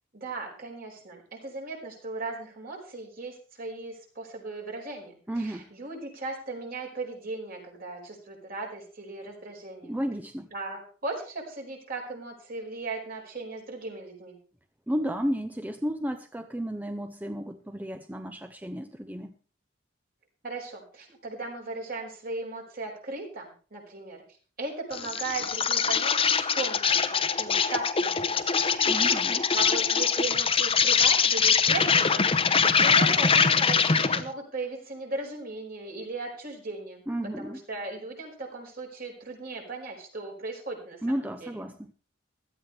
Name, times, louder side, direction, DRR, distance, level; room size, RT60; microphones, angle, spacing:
voice 1, 0.1-9.9 10.5-14.4 20.4-24.2 24.6-28.8 29.5-32.2 32.8-37.0 37.4-41.5, right 3 dB, 50° right, 1 dB, 5.0 m, -37 dB
voice 2, 5.3-5.7 9.8-10.5 14.9-19.3 28.8-29.4 37.1-37.6 41.0-41.8, equal, 10° right, 8 dB, 0.7 m, -32 dB
Insect, 24.9-34.3, left 6 dB, 30° left, 0.8 m, -23 dB
16.5 x 13.0 x 3.4 m, 0.39 s
head